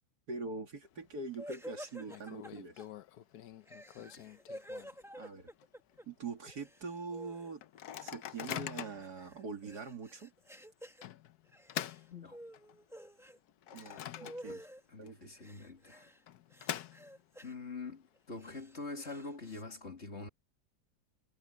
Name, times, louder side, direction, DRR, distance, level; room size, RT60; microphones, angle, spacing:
voice 1, 0.3-2.9 5.2-5.5 6.1-7.6 8.0-10.3 13.7-14.7 15.0-15.3, right 4 dB, 65° right, 3.0 m, -43 dB
Microwave oven, 0.8-1.4 1.6-1.7 2.1-5.2 5.6-5.7 5.9-6.3 6.8-6.9 7.6-9.1 9.7-9.9 11.0-12.8 13.3-14.8 15.1-15.2 16.0-17.4, left 11 dB, 70° left, 1.3 m, -44 dB
sound 1, 1.4-2.8 3.6-6.0 6.3-7.6 7.9-11.0 11.5-12.0 12.3-13.4 13.7-14.8 15.4-16.2 16.5-17.5 18.2-19.6, equal, ahead, 1.6 m, -50 dB
voice 2, 4.0-4.4 12.1-12.4 14.5-14.6 14.9-16.1 17.4-20.3, left 3 dB, 40° left, 2.7 m, -45 dB
omnidirectional pair, 1.8 m